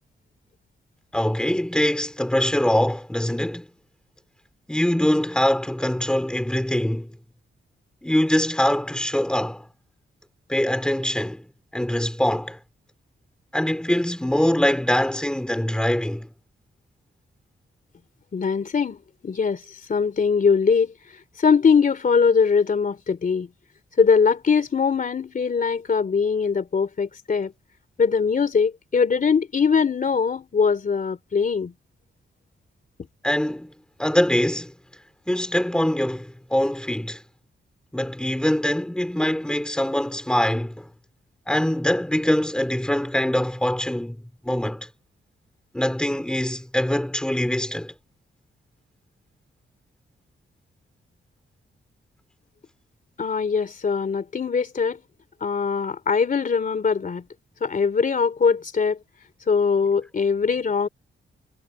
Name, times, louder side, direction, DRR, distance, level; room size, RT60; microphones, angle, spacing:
voice 1, 1.1-3.7 4.7-7.1 8.0-9.7 10.5-12.6 13.5-16.3 33.2-33.7 34.0-34.7 35.3-37.2 37.9-40.9 41.5-44.9 45.7-47.9, left 1 dB, 5° left, 3.9 m, -23 dB
voice 2, 18.3-20.9 21.4-23.5 24.0-27.5 28.0-31.7 53.2-55.0 55.4-57.2 57.6-59.0 59.5-60.9, left 5 dB, 40° left, 3.0 m, -21 dB
wide cardioid pair, 155°, 21 cm